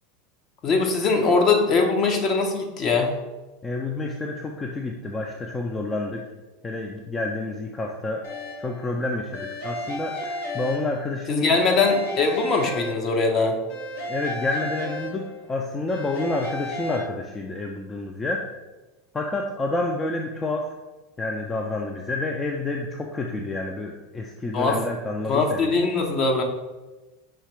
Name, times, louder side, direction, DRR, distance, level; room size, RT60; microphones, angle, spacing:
voice 1, 0.6-3.1 11.3-13.6 24.5-24.8 25.3-26.4, left 4 dB, 40° left, 2 dB, 0.8 m, -21 dB
voice 2, 3.6-6.2 6.6-8.2 8.6-11.5 14.1-15.2 15.5-18.4 19.1-20.7 21.2-25.6, left 2 dB, 20° left, 1 dB, 0.4 m, -29 dB
sound 1, 8.2-8.8 9.3-11.2 11.5-13.3 13.7-15.5 15.9-17.0, left 1 dB, 70° left, 1.2 m, -34 dB
5.6 x 2.9 x 3.2 m, 1.1 s
hypercardioid pair, 85°, 0 cm